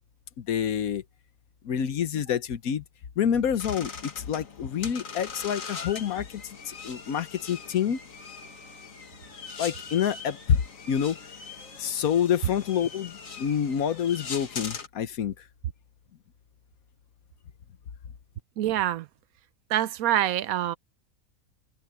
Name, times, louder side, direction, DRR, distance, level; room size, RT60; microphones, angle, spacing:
voice 1, 0.4-1.0 1.6-2.8 3.2-8.0 9.6-10.6 10.9-11.2 11.8-15.4, left 8 dB, 90° left, 1.4 m, -27 dB
sound 1, 3.6-14.9, left 5 dB, 70° left, 2.2 m, -41 dB
voice 2, 18.6-19.1 19.7-20.8, right 12 dB, 85° right, 1.1 m, -25 dB
open air
omnidirectional pair, 1.5 m